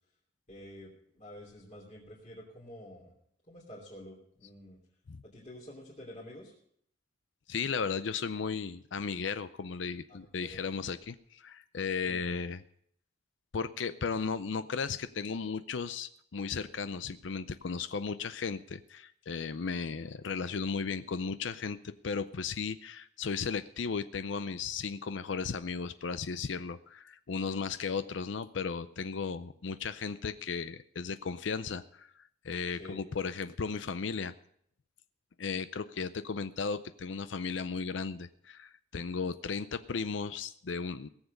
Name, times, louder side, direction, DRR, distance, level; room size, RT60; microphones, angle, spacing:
voice 1, 0.5-3.1 3.5-4.8 5.3-6.5 10.1-10.6 12.0-12.2 32.7-33.2, left 1 dB, 40° left, -5 dB, 3.0 m, -49 dB
voice 2, 7.5-12.6 13.5-32.1 32.4-34.3 35.4-41.1, left 5 dB, 85° left, 13 dB, 0.5 m, -35 dB
18.0 x 7.2 x 6.6 m, 0.68 s
head